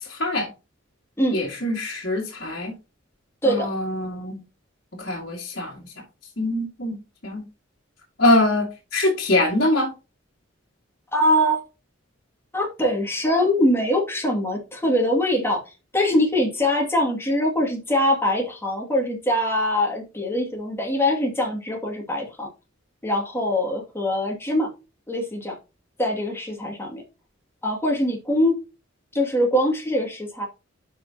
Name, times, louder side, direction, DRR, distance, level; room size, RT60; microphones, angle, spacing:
voice 1, 0.1-0.5 1.3-2.7 3.4-4.4 5.0-5.7 6.4-6.9 7.2-7.4 8.2-9.9, left 1 dB, 55° left, 2.2 m, -23 dB
voice 2, 11.1-11.6 12.5-15.6 15.9-22.5 23.0-24.7 25.1-25.6 26.0-27.0 27.6-28.6 29.1-30.5, left 1 dB, 15° left, 2.4 m, -23 dB
11.5 x 5.2 x 2.9 m
head